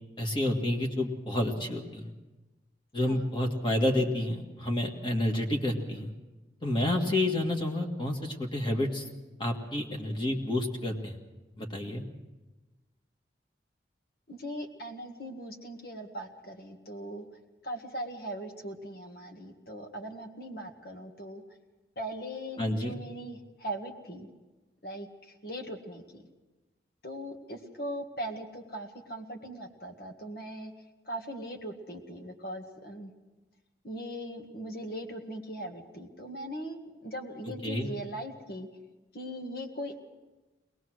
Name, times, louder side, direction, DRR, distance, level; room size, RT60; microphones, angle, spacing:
voice 1, 0.2-2.1 2.9-6.1 6.6-9.1 9.4-11.1 11.6-12.0 22.6-22.9 37.6-37.9, left 1 dB, 30° left, 2 dB, 2.0 m, -29 dB
voice 2, 14.3-17.3 17.6-21.4 22.0-24.3 24.8-26.2 27.0-30.7 31.1-33.1 33.8-38.7 39.1-40.0, right 1 dB, 60° left, 3 dB, 1.9 m, -40 dB
21.5 x 19.5 x 6.3 m, 1.2 s
head